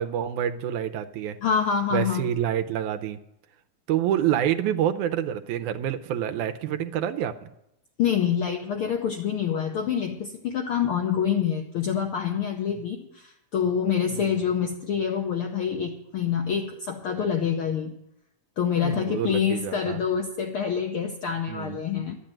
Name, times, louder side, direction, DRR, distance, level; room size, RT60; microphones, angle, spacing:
voice 1, 0.0-1.4 1.9-3.2 3.9-7.5 12.7-12.8 14.1-14.4 18.8-20.0 21.5-21.8, right 10 dB, 85° right, 7 dB, 2.1 m, -27 dB
voice 2, 1.4-2.3 8.0-17.9 18.6-22.2, left 7 dB, 70° left, 4 dB, 1.2 m, -26 dB
12.0 x 8.4 x 8.9 m, 0.84 s
omnidirectional pair, 3.5 m